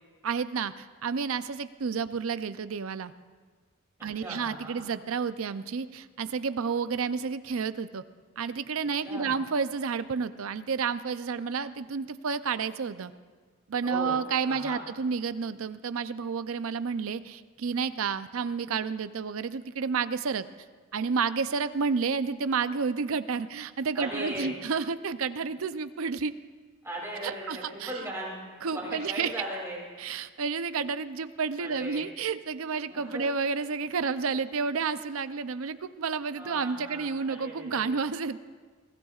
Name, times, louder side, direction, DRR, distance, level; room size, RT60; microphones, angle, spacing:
voice 1, 0.2-3.1 4.0-8.0 8.4-13.1 13.7-20.5 20.9-26.3 27.1-28.0 28.6-29.3 30.0-38.4, right 5 dB, 75° right, 12 dB, 0.5 m, -30 dB
voice 2, 4.0-4.8 9.0-9.3 13.8-14.2 14.4-14.8 23.9-24.5 26.8-28.4 28.7-29.8 31.6-32.0 32.9-33.3 36.4-37.9, right 1 dB, 15° right, -4 dB, 2.8 m, -38 dB
22.5 x 15.5 x 2.4 m, 1.5 s
head